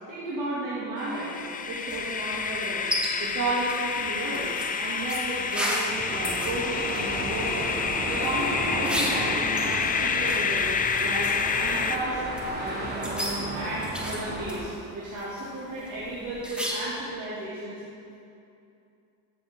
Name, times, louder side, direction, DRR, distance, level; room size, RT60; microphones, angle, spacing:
voice 1, 0.1-2.9 3.2-4.5 4.8-7.7 8.1-11.3 11.5-12.2 12.5-17.8, right 2 dB, 50° right, -9 dB, 2.5 m, -33 dB
sound 1, 1.0-12.0, left 5 dB, 20° left, 0.4 m, -29 dB
sound 2, 1.9-17.1, equal, ahead, 1.5 m, -36 dB
sound 3, 5.8-14.6, right 1 dB, 25° right, 2.3 m, -34 dB
14.0 x 7.6 x 3.8 m, 2.6 s
cardioid pair, 115°, 40 cm